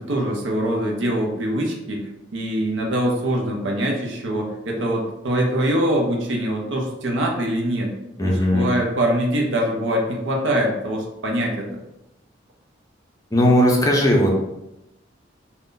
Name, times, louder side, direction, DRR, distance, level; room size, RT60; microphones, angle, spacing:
voice 1, 0.0-2.0 2.3-7.9 8.2-11.8, right 1 dB, 75° right, 0 dB, 0.6 m, -23 dB
voice 2, 8.2-8.7 13.3-14.4, left 1 dB, 20° left, -1 dB, 0.5 m, -17 dB
2.5 x 2.2 x 3.7 m, 0.87 s
head